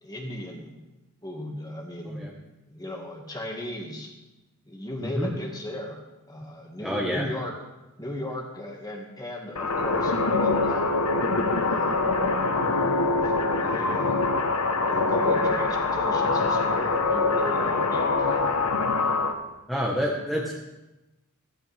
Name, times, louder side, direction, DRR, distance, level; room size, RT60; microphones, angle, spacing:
voice 1, 0.0-0.7 1.2-2.4 2.7-4.1 4.7-6.0 6.3-7.5 8.0-10.9 11.6-12.0 13.2-13.3 13.6-14.3 14.8-18.6, left 1 dB, 15° left, 1 dB, 2.0 m, -36 dB
voice 2, 6.8-7.3 19.7-20.6, equal, ahead, -4 dB, 1.3 m, -28 dB
sound 1, 9.6-19.3, left 3 dB, 90° left, 1.3 m, -24 dB
16.0 x 15.0 x 3.6 m, 1.0 s
head